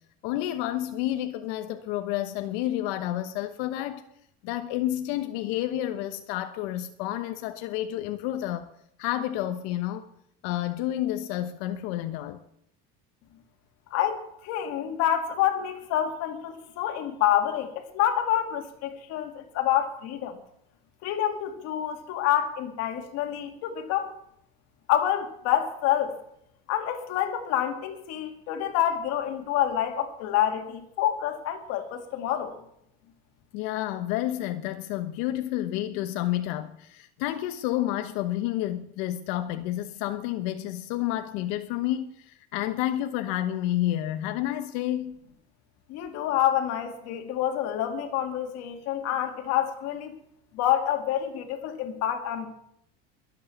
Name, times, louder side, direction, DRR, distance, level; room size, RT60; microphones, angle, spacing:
voice 1, 0.2-4.0 4.4-8.7 9.0-10.1 10.4-12.4 33.5-45.2, left 13 dB, 75° left, 1.1 m, -30 dB
voice 2, 13.9-20.4 21.0-24.2 24.9-26.2 26.7-32.5 45.9-50.1 50.5-52.5, left 11 dB, 55° left, 2.4 m, -27 dB
22.5 x 8.6 x 7.1 m
cardioid pair, 170°, 31 cm